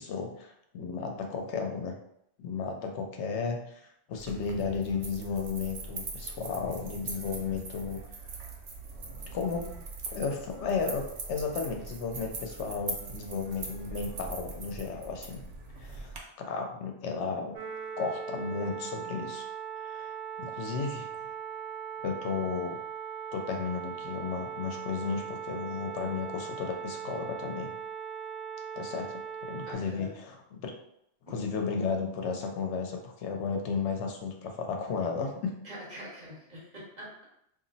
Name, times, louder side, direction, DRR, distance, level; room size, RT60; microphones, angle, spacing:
voice 1, 0.0-1.9 2.4-8.0 9.3-9.8 10.1-15.4 15.8-17.6 18.0-19.4 19.8-21.1 22.0-22.8 23.3-27.7 28.7-30.7 31.3-35.6, left 5 dB, 80° left, 3 dB, 0.9 m, -34 dB
sound 1, 4.2-16.2, right 3 dB, 90° right, 0.9 m, -41 dB
sound 2, 17.5-29.7, right 8 dB, 65° right, 0.7 m, -39 dB
voice 2, 29.6-30.1 31.3-31.4 35.6-37.2, equal, 40° right, -7 dB, 1.2 m, -44 dB
2.5 x 2.0 x 3.8 m, 0.75 s
omnidirectional pair, 1.2 m